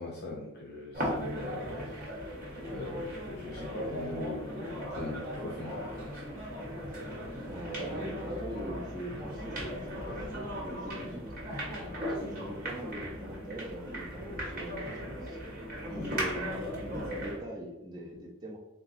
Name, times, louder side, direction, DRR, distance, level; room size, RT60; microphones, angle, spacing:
voice 1, 0.0-2.2 2.7-6.3 15.9-16.1, left 2 dB, 50° left, -3 dB, 0.5 m, -41 dB
sound 1, 0.9-17.4, equal, 40° right, 1.2 m, -37 dB
voice 2, 7.4-11.2 12.0-15.4 15.9-18.6, equal, 20° right, -1 dB, 0.4 m, -42 dB
3.8 x 2.3 x 4.0 m, 0.99 s
head